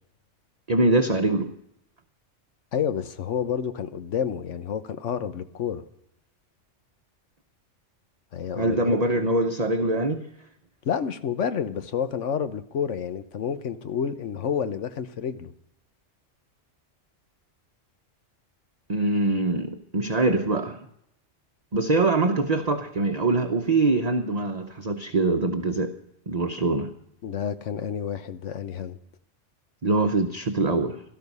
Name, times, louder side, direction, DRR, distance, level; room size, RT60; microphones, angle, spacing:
voice 1, 0.7-1.5 8.6-10.3 18.9-20.8 21.7-25.9 26.3-26.9 29.8-31.0, right 2 dB, 35° right, 5 dB, 0.9 m, -23 dB
voice 2, 2.7-5.8 8.3-9.1 10.8-15.5 27.2-29.0, left 8 dB, 75° left, 11 dB, 1.3 m, -29 dB
17.0 x 12.5 x 5.4 m, 0.75 s
omnidirectional pair, 1.3 m